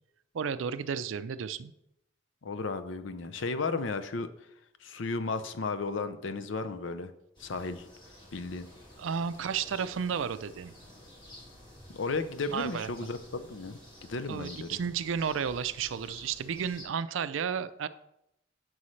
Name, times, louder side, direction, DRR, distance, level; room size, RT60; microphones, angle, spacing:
voice 1, 0.3-1.7 9.0-10.7 12.5-12.9 14.3-17.9, right 7 dB, 80° right, 14 dB, 0.4 m, -32 dB
voice 2, 2.4-4.3 4.8-7.1 7.4-7.9 8.3-8.7 11.9-14.8, left 3 dB, 70° left, 10 dB, 0.6 m, -34 dB
sound 1, 7.3-16.8, left 1 dB, 25° left, 2.0 m, -52 dB
9.6 x 6.3 x 3.2 m, 0.81 s
head